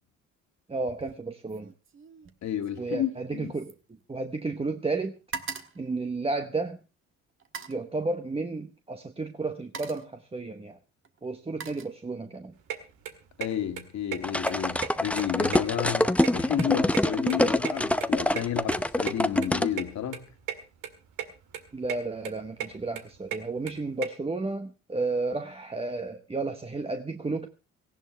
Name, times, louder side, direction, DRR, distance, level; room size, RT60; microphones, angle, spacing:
voice 1, 0.7-1.7 2.8-5.2 5.8-6.8 7.7-10.8 11.2-12.5 21.7-27.5, right 3 dB, 20° right, 1.0 m, -32 dB
sound 1, 0.8-1.2 1.5-4.6 4.9-6.8 7.4-7.9 8.9-9.1 9.5-10.2 11.0-12.4 12.8-13.2, right 5 dB, 45° right, 1.5 m, -43 dB
voice 2, 2.4-3.5 13.4-20.3, left 10 dB, 65° left, 2.1 m, -31 dB
sound 2, 12.7-12.8 13.0-13.5 13.8-13.9 14.1-14.2 14.4-15.2 15.5-16.7 16.9-18.4 18.7-18.8 19.1-19.2 19.4-19.5 19.8-19.9 20.1-20.6 20.8-21.3 21.5-22.0 22.2-24.1, right 10 dB, 85° right, 1.9 m, -34 dB
sound 3, 14.2-19.7, left 1 dB, 5° left, 0.7 m, -25 dB
18.0 x 16.0 x 3.4 m
cardioid pair, 90°, 30 cm